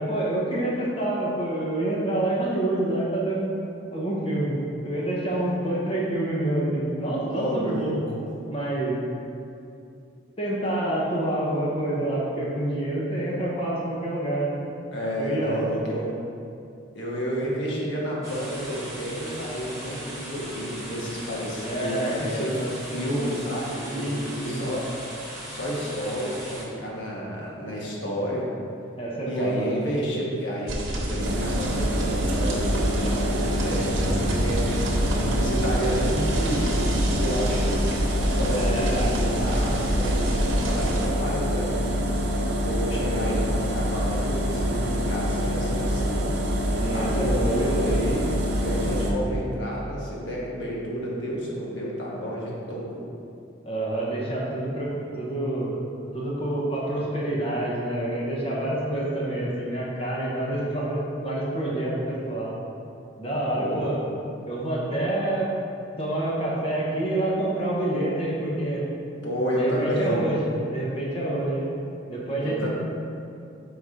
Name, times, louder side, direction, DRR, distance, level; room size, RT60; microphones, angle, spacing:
voice 1, 0.0-3.5 3.9-4.6 4.8-7.9 8.5-9.0 10.4-14.6 15.2-15.6 17.4-17.5 21.6-22.7 23.9-24.2 24.4-24.6 29.0-29.9 38.5-39.1 46.7-47.8 53.6-55.8 56.1-62.6 63.2-64.0 64.5-65.5 66.0-68.8 69.5-71.7 72.1-72.7, right 1 dB, 30° left, -5 dB, 1.0 m, -27 dB
voice 2, 7.2-8.3 14.9-16.1 16.9-22.5 22.9-24.9 25.5-28.5 29.2-34.6 35.1-37.8 38.3-42.2 42.6-46.2 46.9-48.3 48.6-53.1 63.6-64.0 69.2-70.2 72.4-72.7, equal, 65° left, -4 dB, 1.3 m, -30 dB
sound 1, 18.2-26.6, right 1 dB, 15° right, 1.1 m, -38 dB
sound 2, 30.7-41.1, right 1 dB, 85° right, 0.9 m, -28 dB
sound 3, 31.2-49.1, equal, 55° right, 0.7 m, -26 dB
4.7 x 4.0 x 5.0 m, 2.6 s
head